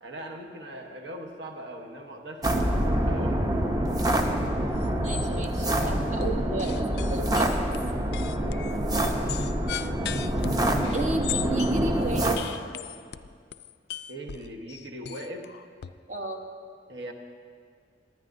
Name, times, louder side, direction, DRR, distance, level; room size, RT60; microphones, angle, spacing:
voice 1, 0.0-3.4 8.3-9.0 9.8-10.1 14.1-15.5 16.9-17.1, right 1 dB, 70° right, 4 dB, 1.1 m, -40 dB
sound 1, 2.4-12.4, right 1 dB, 20° right, 0.7 m, -26 dB
sound 2, 4.3-4.6 4.8-5.4 5.8-6.2 6.6-11.8 12.4-15.9, left 10 dB, 60° left, 0.4 m, -38 dB
voice 2, 5.0-6.7 7.1-7.5 10.9-12.4 16.1-16.4, right 2 dB, 40° right, 2 dB, 1.0 m, -32 dB
20.5 x 9.7 x 2.6 m, 2.1 s
head